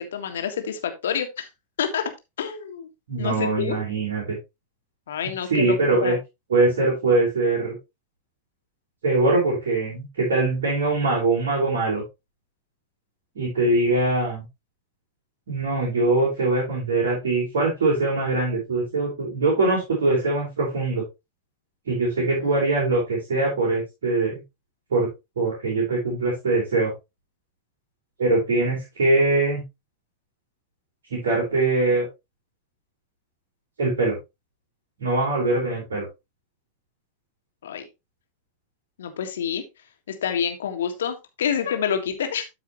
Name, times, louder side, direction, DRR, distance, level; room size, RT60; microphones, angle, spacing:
voice 1, 0.0-1.5 1.8-2.1 2.4-2.9 3.2-3.8 5.1-6.2 22.2-22.6 37.6-37.8 39.0-39.6 40.1-42.5, left 8 dB, 60° left, 6 dB, 1.6 m, -28 dB
voice 2, 3.1-4.4 5.5-6.2 6.5-7.8 9.0-12.0 13.3-14.4 15.5-21.0 21.9-24.4 24.9-25.1 25.4-26.9 28.2-29.6 31.1-32.1 33.8-34.2 35.0-36.1, right 2 dB, 65° right, -4 dB, 4.3 m, -22 dB
12.5 x 5.0 x 3.0 m, 0.23 s
figure-of-eight pair, 90°, 0 cm